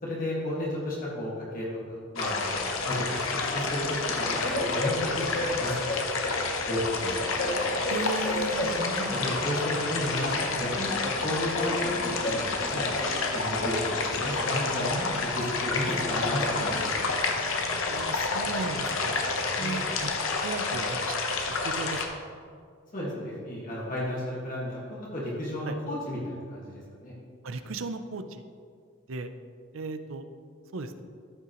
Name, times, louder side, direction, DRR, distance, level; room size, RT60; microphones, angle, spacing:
voice 1, 0.0-3.2 3.5-3.9 4.2-7.2 8.5-12.9 13.3-16.8 19.5-19.9 22.9-27.1, left 1 dB, 40° left, -6 dB, 1.7 m, -33 dB
sound 1, 2.2-22.1, left 3 dB, 85° left, 0.9 m, -29 dB
Train, 3.1-17.1, left 1 dB, 65° left, 1.5 m, -36 dB
voice 2, 7.9-8.7 17.9-19.1 19.6-20.1 20.4-21.2 21.6-22.2 25.7-25.8 27.4-28.4 29.1-29.3 29.7-30.2 30.7-31.0, right 3 dB, 80° right, 9 dB, 0.6 m, -36 dB
13.0 x 5.7 x 3.0 m, 2.1 s
head